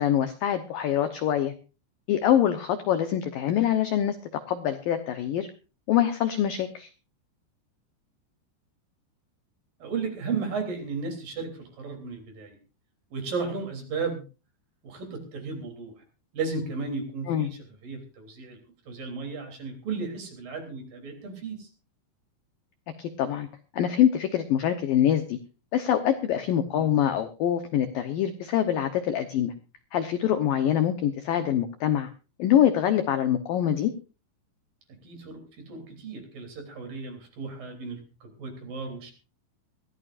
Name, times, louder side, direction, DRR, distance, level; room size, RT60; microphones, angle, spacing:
voice 1, 0.0-1.5 2.1-4.2 4.5-5.5 5.9-6.9 17.3-17.5 23.0-23.5 23.7-25.4 25.7-29.5 29.9-32.1 32.4-33.9, left 10 dB, 80° left, 8 dB, 2.0 m, -24 dB
voice 2, 9.8-12.6 13.1-14.2 14.8-15.9 16.3-18.6 18.9-21.7 26.7-26.9 35.0-39.1, right 4 dB, 50° right, 5 dB, 4.7 m, -34 dB
22.5 x 15.5 x 2.5 m, 0.32 s
omnidirectional pair, 5.6 m